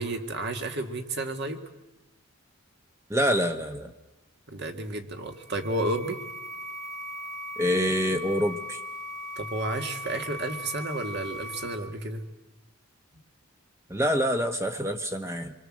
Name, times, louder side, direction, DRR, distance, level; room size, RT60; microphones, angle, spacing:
voice 1, 0.0-1.6 4.5-6.2 9.4-12.2, right 2 dB, 50° right, 5 dB, 2.1 m, -31 dB
voice 2, 3.1-3.9 7.6-8.8 13.9-15.5, equal, 10° right, 6 dB, 1.1 m, -26 dB
sound 1, 5.3-11.8, left 1 dB, 30° right, 1.8 m, -38 dB
26.5 x 22.5 x 7.6 m, 1.0 s
head